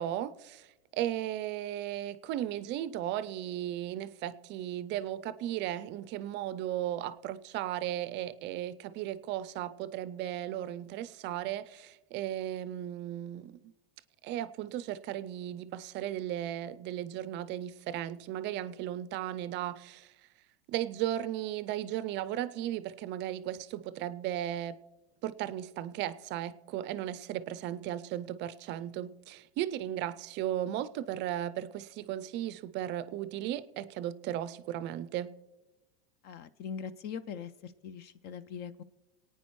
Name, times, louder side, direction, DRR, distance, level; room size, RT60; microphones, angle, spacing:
voice 1, 0.0-13.6 14.2-20.1 20.7-24.8 25.2-35.4, right 12 dB, 35° right, 0.5 m, -36 dB
voice 2, 36.2-38.8, left 7 dB, 35° left, 0.4 m, -41 dB
24.0 x 9.2 x 3.1 m
supercardioid pair, 120°, 30 cm